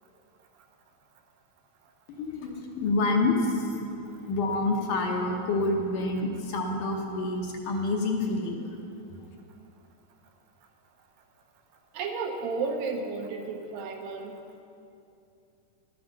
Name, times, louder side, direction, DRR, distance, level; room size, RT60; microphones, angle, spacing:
voice 1, 2.1-3.8 4.3-8.7, left 2 dB, 70° left, 1 dB, 2.4 m, -27 dB
voice 2, 11.9-14.3, right 4 dB, 80° right, 3 dB, 2.7 m, -32 dB
12.0 x 9.6 x 6.6 m, 2.7 s
omnidirectional pair, 4.2 m